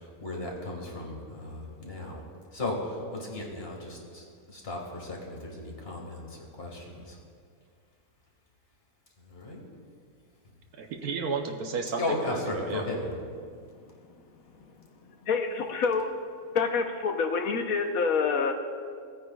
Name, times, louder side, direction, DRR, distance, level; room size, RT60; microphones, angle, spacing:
voice 1, 0.0-2.2 2.5-6.3 6.6-7.2 9.3-9.6 12.0-13.2, left 2 dB, 40° left, -1 dB, 1.9 m, -35 dB
voice 2, 10.8-12.8, right 4 dB, 85° right, 3 dB, 1.2 m, -33 dB
voice 3, 15.3-16.1 16.5-18.5, left 5 dB, 75° left, 5 dB, 1.2 m, -27 dB
17.5 x 9.2 x 2.3 m, 2.2 s
omnidirectional pair, 1.6 m